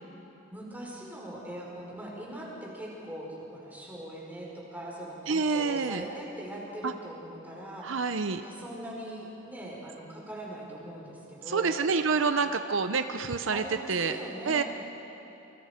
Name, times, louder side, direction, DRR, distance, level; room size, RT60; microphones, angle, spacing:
voice 1, 0.5-11.7 13.5-14.6, right 1 dB, 10° right, -4 dB, 4.9 m, -41 dB
voice 2, 5.3-6.0 6.8-6.9 7.8-8.4 11.5-13.6 13.9-14.2 14.5-14.6, right 4 dB, 70° right, 9 dB, 0.7 m, -27 dB
28.0 x 24.0 x 5.1 m, 3.0 s
head